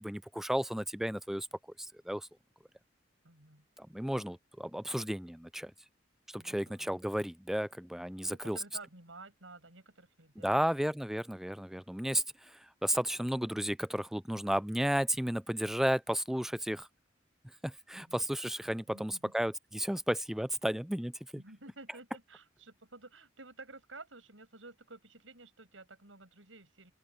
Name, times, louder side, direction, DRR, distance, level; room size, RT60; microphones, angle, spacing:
voice 1, 0.0-1.5 2.1-2.3 3.9-5.7 6.3-8.6 10.4-16.9 17.6-21.4, equal, ahead, 0.4 m, -33 dB
voice 2, 3.2-3.7 6.3-7.2 8.2-10.7 17.9-18.3 18.9-19.3 21.4-26.9, right 3 dB, 85° right, 7.5 m, -53 dB
open air
head